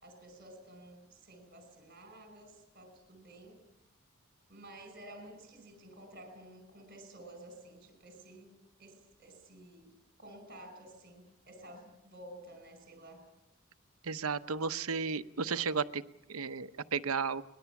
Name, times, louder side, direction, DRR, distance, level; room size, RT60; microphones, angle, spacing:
voice 1, 0.0-3.6 4.5-8.5 8.8-9.9 10.2-13.2, right 1 dB, 45° right, 6 dB, 5.2 m, -52 dB
voice 2, 14.0-16.0 16.3-17.4, right 5 dB, 85° right, 12 dB, 0.9 m, -33 dB
23.5 x 20.0 x 7.1 m, 0.91 s
head